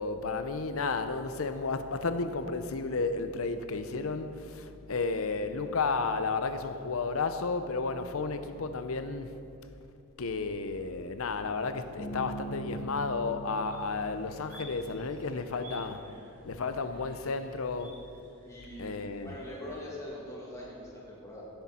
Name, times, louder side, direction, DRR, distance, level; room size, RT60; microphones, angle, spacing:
voice 1, 0.0-9.3 10.2-16.0 16.4-17.9 18.8-19.3, left 4 dB, 70° left, 9 dB, 0.6 m, -32 dB
Bass guitar, 12.0-15.5, right 2 dB, 85° left, 2.2 m, -42 dB
sound 1, 13.7-19.9, equal, 40° right, 2.8 m, -55 dB
voice 2, 18.4-21.5, left 1 dB, 15° left, -5 dB, 2.4 m, -43 dB
16.5 x 8.0 x 4.3 m, 2.6 s
head